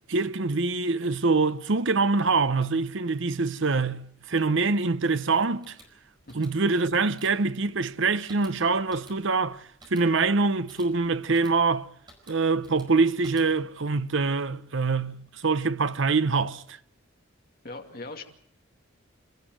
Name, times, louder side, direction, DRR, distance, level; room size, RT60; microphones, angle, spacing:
voice 1, 0.1-5.8 6.3-11.9 12.3-16.8, right 4 dB, 65° right, 0.8 m, -25 dB
sound 1, 5.6-13.8, right 1 dB, 20° right, 4.9 m, -55 dB
voice 2, 17.6-18.2, left 2 dB, 45° left, 2.5 m, -39 dB
28.0 x 13.5 x 7.7 m
head